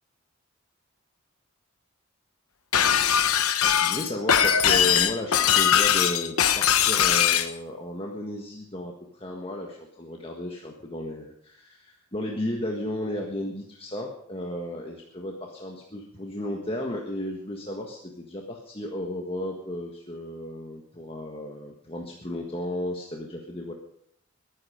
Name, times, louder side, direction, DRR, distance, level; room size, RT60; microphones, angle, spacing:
Shatter, 2.7-7.5, left 9 dB, 85° left, 1.0 m, -21 dB
voice 1, 3.8-23.7, left 1 dB, 25° left, 0 dB, 1.5 m, -34 dB
22.0 x 9.9 x 5.1 m, 0.69 s
head